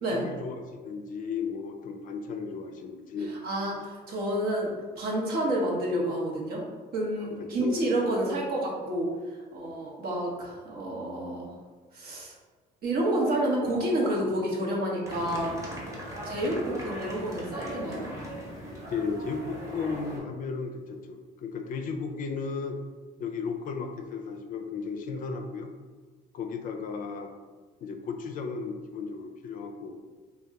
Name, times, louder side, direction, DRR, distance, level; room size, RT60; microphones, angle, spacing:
voice 1, 0.1-3.3 7.6-7.9 18.9-22.8 23.2-25.7 26.3-27.3 27.8-30.0, left 5 dB, 55° left, 5 dB, 0.4 m, -35 dB
voice 2, 3.4-4.7 5.0-6.6 6.9-9.1 9.5-11.5 11.9-12.3 12.8-15.5 16.2-18.1, right 1 dB, 65° right, -3 dB, 0.9 m, -29 dB
sound 1, 15.0-20.2, equal, 20° right, 0.9 m, -39 dB
2.8 x 2.2 x 3.4 m, 1.4 s
cardioid pair, 110°, 17 cm